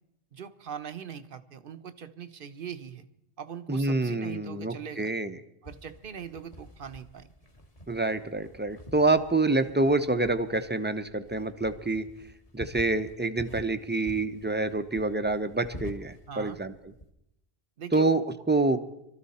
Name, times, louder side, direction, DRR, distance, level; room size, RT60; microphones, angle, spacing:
voice 1, 0.3-3.1 3.4-5.1 5.6-7.3 16.3-16.6 17.8-18.1, right 7 dB, 60° right, 11 dB, 0.9 m, -41 dB
voice 2, 3.7-5.4 7.9-12.1 12.5-16.7 17.9-18.8, right 2 dB, 10° right, 10 dB, 0.6 m, -27 dB
sound 1, 5.6-17.1, equal, 35° left, 1.5 m, -48 dB
24.0 x 13.5 x 4.2 m, 0.83 s
omnidirectional pair, 1.1 m